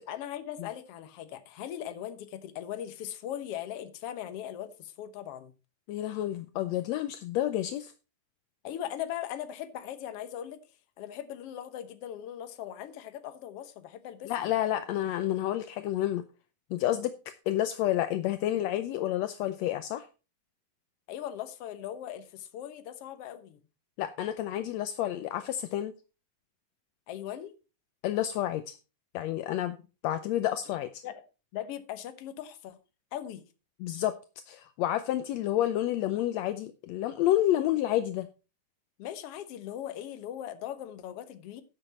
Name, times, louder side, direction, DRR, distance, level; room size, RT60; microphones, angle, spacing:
voice 1, 0.1-5.5 8.6-10.6 11.0-14.5 21.1-23.6 27.1-27.5 31.0-31.2 31.5-32.8 33.1-33.5 39.0-41.6, left 11 dB, 60° left, 1.7 m, -39 dB
voice 2, 5.9-7.9 14.3-16.2 16.7-20.1 24.0-25.9 28.0-28.8 29.1-29.8 30.0-31.0 33.8-34.1 34.5-38.3, left 13 dB, 80° left, 1.6 m, -29 dB
11.0 x 7.9 x 4.3 m
omnidirectional pair, 3.7 m